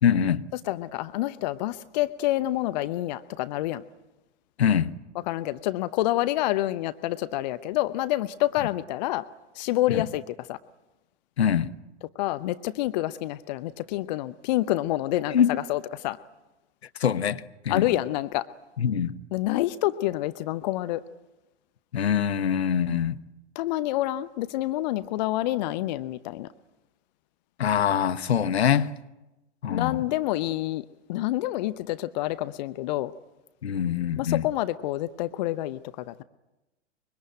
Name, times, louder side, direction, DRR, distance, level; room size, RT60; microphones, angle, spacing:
voice 1, 0.0-0.5 4.6-4.9 9.9-10.0 11.4-11.7 15.3-15.5 17.0-17.9 18.8-19.2 21.9-23.2 27.6-28.9 29.6-30.0 33.6-34.5, left 8 dB, 65° left, 1.2 m, -24 dB
voice 2, 0.7-3.8 5.3-9.3 9.5-10.6 12.2-16.2 17.7-18.5 19.3-21.0 23.6-26.5 29.7-33.1 34.2-36.2, left 15 dB, 40° left, 0.8 m, -28 dB
25.0 x 23.0 x 9.0 m
figure-of-eight pair, 100°, 35 cm